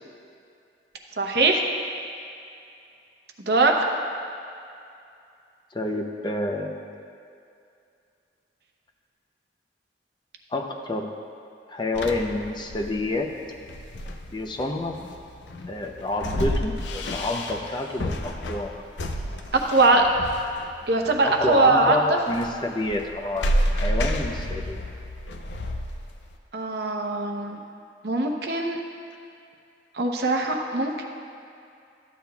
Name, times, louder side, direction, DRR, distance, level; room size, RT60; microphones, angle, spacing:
voice 1, 1.2-1.6 3.5-3.7 19.5-20.0 20.9-22.0 26.5-27.6 28.0-28.8 29.9-31.0, right 3 dB, 65° right, 2 dB, 0.8 m, -21 dB
voice 2, 5.7-6.8 10.5-11.1 11.7-13.3 14.3-15.0 15.7-18.8 19.9-20.1 21.2-24.8 28.6-28.7, left 2 dB, 25° left, 2 dB, 0.5 m, -28 dB
sound 1, 11.9-26.4, equal, 85° left, 0.6 m, -30 dB
13.5 x 8.5 x 2.3 m, 2.5 s
head